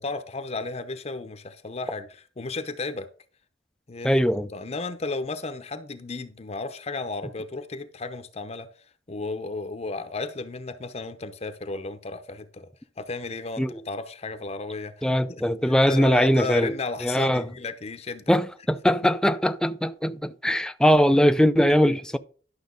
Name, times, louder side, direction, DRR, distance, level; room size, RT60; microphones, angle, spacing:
voice 1, 0.0-3.1 3.9-4.2 4.5-8.7 9.1-12.7 13.0-18.2 18.9-19.1, left 3 dB, 35° left, 0.8 m, -34 dB
voice 2, 4.0-4.5 13.6-13.7 15.0-16.7 17.0-17.4 18.3-22.2, equal, 5° left, 0.4 m, -21 dB
11.5 x 6.4 x 3.8 m
head